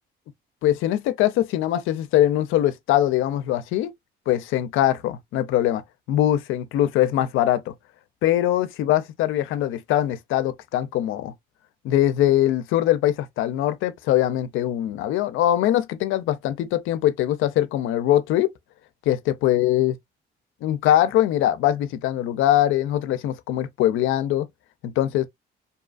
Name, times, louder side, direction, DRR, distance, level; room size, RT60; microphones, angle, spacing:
voice 1, 0.6-3.9 4.3-5.8 6.1-7.7 8.2-11.3 11.8-18.5 19.1-19.9 20.6-24.5 24.8-25.3, left 12 dB, 85° left, 0.4 m, -22 dB
2.7 x 2.3 x 2.3 m
cardioid pair, 90°, 20 cm